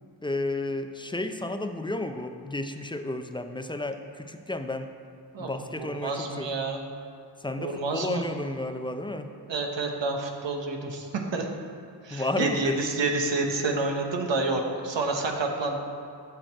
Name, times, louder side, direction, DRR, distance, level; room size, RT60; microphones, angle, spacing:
voice 1, 0.2-4.9 5.4-6.5 7.4-9.3 12.1-12.8, left 2 dB, 10° left, 7 dB, 0.4 m, -32 dB
voice 2, 5.3-6.8 7.6-8.2 9.5-11.5 12.0-15.8, right 3 dB, 90° right, 2 dB, 1.0 m, -29 dB
9.0 x 6.2 x 4.4 m, 2.6 s
wide cardioid pair, 90°, 43 cm